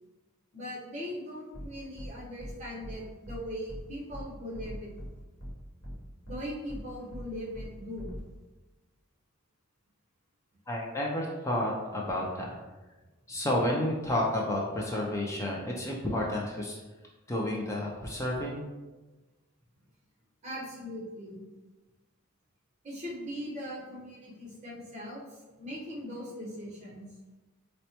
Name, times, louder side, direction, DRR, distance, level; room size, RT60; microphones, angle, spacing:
voice 1, 0.5-4.9 6.3-8.1 20.4-21.4 22.8-27.0, equal, 30° right, -5 dB, 0.9 m, -40 dB
sound 1, 1.5-1.7 2.0-2.1 2.4-2.5 2.8-3.0 3.2-3.4 3.7-3.8 4.1-4.2 4.5-5.1 5.4-5.5 5.8-5.9 6.2-6.4 6.7-6.8 7.1-7.2 7.5-7.7 8.0-8.2, equal, 60° left, 1.0 m, -41 dB
voice 2, 10.7-12.6 13.3-16.8 17.3-18.6, left 1 dB, 15° left, -2 dB, 0.3 m, -31 dB
4.3 x 2.1 x 2.8 m, 1.2 s
head